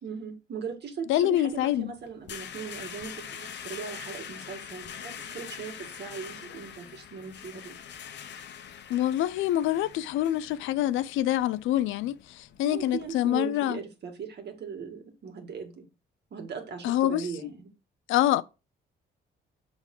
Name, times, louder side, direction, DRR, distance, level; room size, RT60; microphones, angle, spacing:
voice 1, 0.0-7.8 12.6-15.8 16.3-17.7, right 6 dB, 55° right, 1.8 m, -39 dB
voice 2, 1.1-1.9 8.9-13.8 16.8-17.3 18.1-18.4, left 13 dB, 85° left, 0.4 m, -26 dB
sound 1, 1.5-13.1, left 8 dB, 60° left, 0.8 m, -44 dB
7.2 x 3.6 x 3.8 m
cardioid pair, 90°, 20 cm